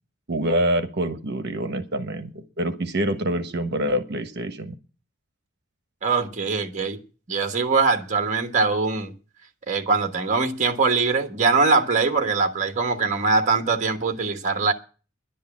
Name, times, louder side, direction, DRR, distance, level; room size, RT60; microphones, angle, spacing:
voice 1, 0.3-4.7, equal, 55° right, 1.3 m, -26 dB
voice 2, 6.0-7.0 7.3-9.1 9.7-14.7, right 4 dB, 35° right, 1.3 m, -22 dB
11.0 x 8.5 x 8.4 m
head